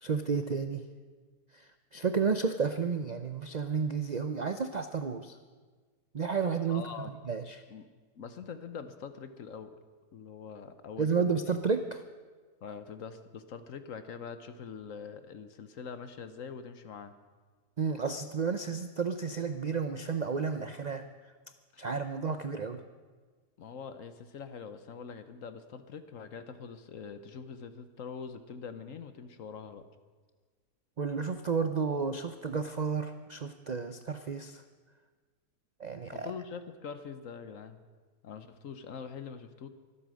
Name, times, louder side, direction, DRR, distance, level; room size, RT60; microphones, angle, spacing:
voice 1, 0.0-0.9 1.5-5.4 6.1-6.9 7.3-7.6 11.0-12.0 17.8-21.1 21.8-22.8 31.0-34.6 35.8-36.3, right 5 dB, 90° right, 8 dB, 0.3 m, -32 dB
voice 2, 6.7-7.1 7.7-7.9 8.1-9.8 10.1-11.4 12.6-17.1 23.6-29.9 36.1-37.8 38.2-39.7, left 6 dB, 60° left, 10 dB, 1.2 m, -44 dB
24.0 x 8.5 x 6.4 m, 1.4 s
omnidirectional pair, 1.7 m